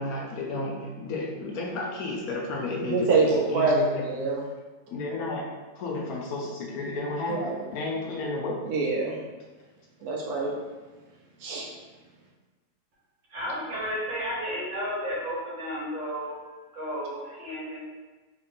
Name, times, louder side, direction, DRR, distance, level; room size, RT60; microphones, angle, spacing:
voice 1, 0.0-4.2 4.9-5.5 5.8-8.6, left 2 dB, 70° left, -1 dB, 1.0 m, -32 dB
voice 2, 2.8-4.4 7.3-7.6 8.7-9.1 10.0-10.5 11.4-11.7, right 3 dB, 70° right, -2 dB, 1.0 m, -25 dB
voice 3, 13.3-16.4 16.7-17.9, equal, 55° right, -7 dB, 1.3 m, -32 dB
2.9 x 2.6 x 3.7 m, 1.2 s
omnidirectional pair, 1.7 m